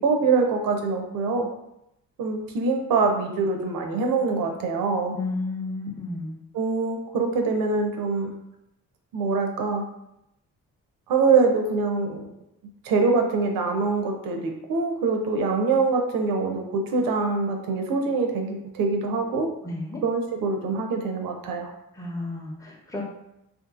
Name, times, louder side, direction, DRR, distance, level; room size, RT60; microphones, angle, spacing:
voice 1, 0.0-1.5 2.2-5.2 6.5-8.3 9.1-9.8 11.1-12.3 12.8-19.5 20.0-21.7, right 4 dB, 80° right, 3 dB, 0.5 m, -24 dB
voice 2, 5.1-6.4 19.6-20.0 21.9-23.0, left 2 dB, 10° left, -2 dB, 0.7 m, -32 dB
2.5 x 2.5 x 2.4 m, 0.82 s
supercardioid pair, 50°, 34 cm